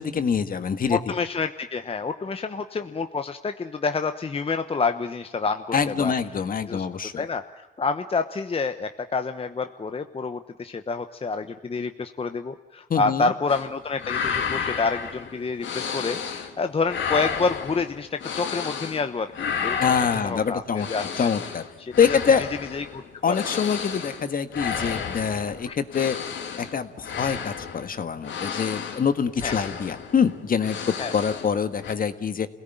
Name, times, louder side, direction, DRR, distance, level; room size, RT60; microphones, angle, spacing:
voice 1, 0.0-1.0 5.7-7.2 12.9-13.3 19.8-20.9 21.2-21.6 22.0-22.5 23.2-26.2 26.6-32.5, left 6 dB, 45° left, 10 dB, 1.6 m, -25 dB
voice 2, 0.9-6.1 6.7-6.9 7.2-19.3 19.6-19.9 20.2-21.3 21.8-22.2 22.7-23.6 25.3-25.7 29.4-29.6 31.0-31.1, left 4 dB, 30° left, 8 dB, 1.1 m, -28 dB
sound 1, 13.5-13.7 14.0-16.6 16.8-19.1 19.3-31.5 31.8-31.9, left 7 dB, 70° left, 2.7 m, -32 dB
27.5 x 17.5 x 9.2 m, 1.1 s
cardioid pair, 90°, 20 cm